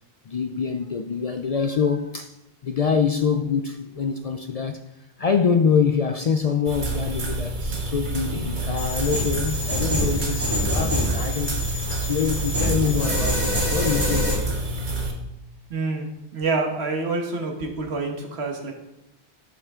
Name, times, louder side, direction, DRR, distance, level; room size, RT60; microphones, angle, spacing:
voice 1, 0.3-2.4 2.6-4.8 5.2-14.4, left 6 dB, 50° left, 0.4 m, -25 dB
sound 1, 6.6-15.1, right 1 dB, 50° right, 1.3 m, -28 dB
sound 2, 8.8-14.3, equal, 25° right, 2.8 m, -26 dB
voice 2, 15.7-16.1 16.3-18.7, right 3 dB, 85° right, 1.5 m, -27 dB
11.5 x 5.6 x 3.6 m
omnidirectional pair, 1.1 m